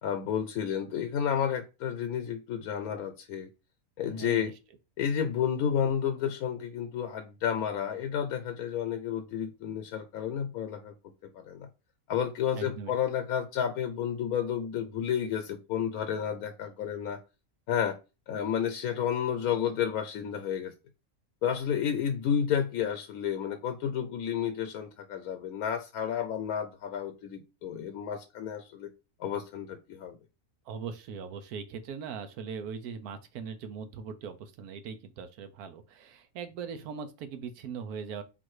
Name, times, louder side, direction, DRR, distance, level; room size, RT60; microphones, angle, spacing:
voice 1, 0.0-3.5 4.0-4.5 5.0-10.9 11.3-11.7 12.1-17.2 17.7-18.0 18.3-20.7 21.4-28.9 29.2-30.2, left 8 dB, 80° left, 1.1 m, -31 dB
voice 2, 4.1-4.5 12.6-12.9 30.7-38.2, right 6 dB, 85° right, 1.2 m, -40 dB
3.7 x 2.5 x 4.7 m
omnidirectional pair, 1.6 m